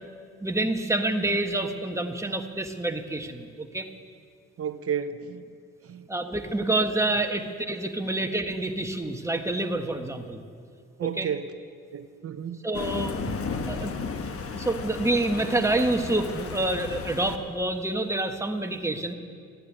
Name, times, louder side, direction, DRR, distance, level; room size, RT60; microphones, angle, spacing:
voice 1, 0.4-3.9 6.1-10.4 11.2-11.3 12.6-13.3 13.7-14.1 14.5-19.1, right 2 dB, 10° right, 5 dB, 1.3 m, -27 dB
voice 2, 4.6-5.6 5.8-6.1 7.4-7.5 8.0-8.2 11.0-11.6 11.9-12.6, right 7 dB, 50° right, 11 dB, 0.8 m, -33 dB
Thunder, 12.7-17.4, left 5 dB, 50° left, 1.3 m, -34 dB
14.0 x 9.9 x 9.7 m, 2.1 s
cardioid pair, 90°, 30 cm